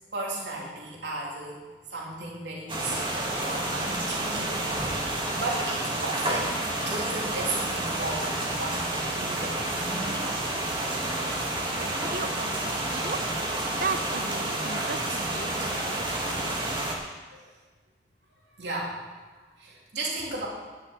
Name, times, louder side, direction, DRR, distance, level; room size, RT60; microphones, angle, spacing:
voice 1, 0.1-1.6 1.9-4.6 4.9-8.8 9.1-10.3 17.3-17.5 18.6-19.0 19.6-20.5, right 2 dB, 70° right, -3 dB, 3.2 m, -35 dB
sound 1, 2.7-16.9, right 1 dB, 30° right, 1.8 m, -30 dB
voice 2, 11.7-13.2 13.7-16.2, right 5 dB, 55° right, 11 dB, 0.7 m, -36 dB
11.5 x 6.8 x 8.2 m, 1.3 s
head